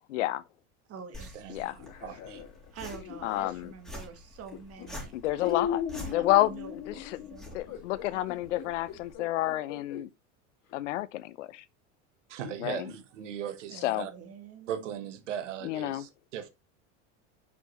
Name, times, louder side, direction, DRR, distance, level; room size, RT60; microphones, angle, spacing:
voice 1, 0.1-0.4 1.5-1.8 3.2-3.7 5.1-6.5 6.9-7.0 7.5-10.1 10.7-11.6 12.6-12.9 13.8-14.1 15.6-16.1, left 15 dB, 85° left, 0.7 m, -29 dB
voice 2, 0.9-2.2 2.7-5.6 6.0-7.0 7.3-7.7 8.1-8.3 13.7-15.1, right 6 dB, 40° right, 2.1 m, -47 dB
sound 1, 1.1-9.1, left 1 dB, ahead, 3.4 m, -47 dB
sound 2, 1.8-3.7 4.5-4.9 5.4-10.1 10.7-10.8 12.4-12.6, left 9 dB, 55° left, 2.4 m, -38 dB
voice 3, 2.0-2.4 12.3-14.1 14.7-16.5, right 9 dB, 90° right, 1.3 m, -38 dB
6.1 x 5.9 x 3.1 m
supercardioid pair, 105°, 36 cm